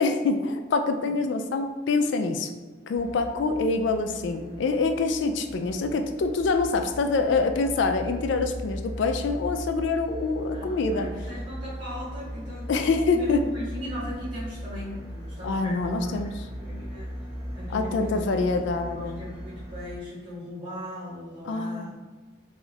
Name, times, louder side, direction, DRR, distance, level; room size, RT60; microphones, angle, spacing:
voice 1, 0.0-2.5 2.9-11.1 12.7-13.4 15.4-16.4 17.7-19.2 21.4-21.9, left 3 dB, 70° left, 6 dB, 0.3 m, -25 dB
sound 1, 2.9-20.0, equal, 20° right, 0.8 m, -38 dB
voice 2, 10.5-12.7 13.1-16.3 16.6-17.1 17.5-18.3 18.9-21.9, equal, 45° right, -11 dB, 1.4 m, -38 dB
3.6 x 2.3 x 4.2 m, 1.3 s
head